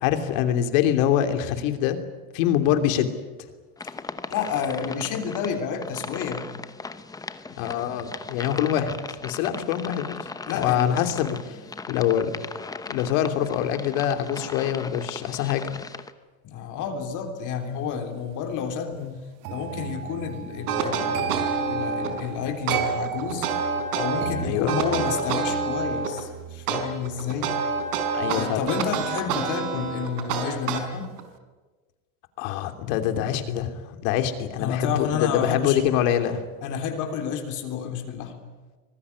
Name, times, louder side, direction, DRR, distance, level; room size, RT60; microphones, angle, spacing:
voice 1, 0.0-2.0 2.3-3.1 7.5-10.1 10.5-11.6 11.9-12.4 12.9-15.7 19.0-19.1 24.4-24.8 28.1-28.7 32.4-36.4, left 10 dB, 60° left, 7 dB, 3.2 m, -25 dB
sound 1, 3.8-16.1, left 4 dB, 10° left, 0.9 m, -38 dB
voice 2, 4.3-6.5 10.5-11.1 16.4-19.0 19.5-23.5 23.9-27.6 28.4-31.1 34.6-35.9 36.6-38.4, left 7 dB, 40° left, 5 dB, 3.5 m, -30 dB
sound 2, 19.4-30.4 30.7-31.1, right 12 dB, 45° right, 1.9 m, -36 dB
sound 3, 20.7-22.2 22.7-24.3 24.7-26.2 26.7-31.2, right 5 dB, 85° right, 4.9 m, -27 dB
25.5 x 19.5 x 9.7 m, 1.3 s
supercardioid pair, 145°, 44 cm